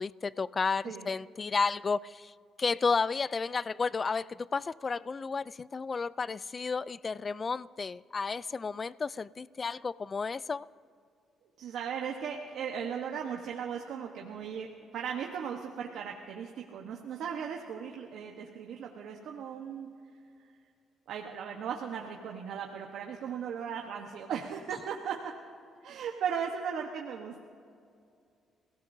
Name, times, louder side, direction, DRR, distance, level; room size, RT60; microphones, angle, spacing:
voice 1, 0.0-2.3 2.6-10.7, left 4 dB, 35° left, 0.3 m, -32 dB
voice 2, 11.6-19.9 21.1-25.3 25.8-27.4, right 7 dB, 80° right, 1.1 m, -37 dB
28.0 x 17.0 x 2.7 m
cardioid pair, 90°, 0 cm